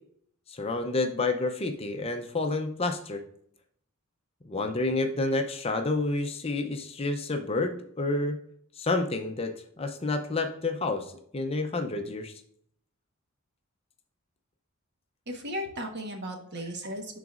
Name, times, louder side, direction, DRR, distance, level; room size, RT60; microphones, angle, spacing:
voice 1, 0.5-3.2 4.5-8.4 8.8-12.3, left 2 dB, 25° left, 5 dB, 0.6 m, -29 dB
voice 2, 15.3-17.2, equal, 50° right, 2 dB, 1.3 m, -36 dB
11.0 x 4.0 x 2.5 m, 0.67 s
head